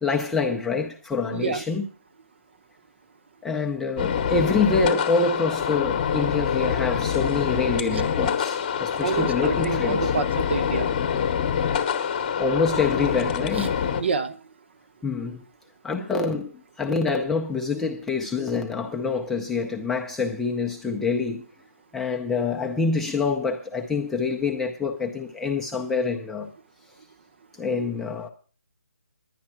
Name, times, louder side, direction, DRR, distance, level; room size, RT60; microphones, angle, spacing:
voice 1, 0.0-1.9 3.4-10.1 12.4-13.7 15.0-15.4 15.8-16.5 16.8-21.5 21.9-26.5 27.6-28.3, left 4 dB, 5° left, 0.5 m, -26 dB
voice 2, 1.3-1.6 9.0-10.9 13.6-13.7 14.0-14.4, right 5 dB, 50° right, 0.9 m, -27 dB
sound 1, 4.0-14.0, left 7 dB, 25° left, 1.0 m, -25 dB
11.0 x 9.5 x 5.8 m
hypercardioid pair, 165°, 8 cm